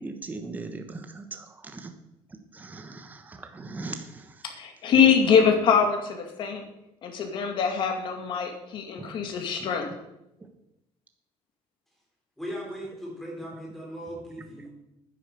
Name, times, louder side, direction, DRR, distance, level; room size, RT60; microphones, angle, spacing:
voice 1, 0.0-1.9 2.5-4.3 9.0-9.2, right 3 dB, 15° right, 6 dB, 1.1 m, -39 dB
voice 2, 4.4-6.6 7.0-9.9, left 6 dB, 45° left, 4 dB, 2.3 m, -23 dB
voice 3, 12.4-14.7, equal, ahead, -2 dB, 4.1 m, -38 dB
10.0 x 9.3 x 6.8 m, 0.88 s
cardioid pair, 170°, 11 cm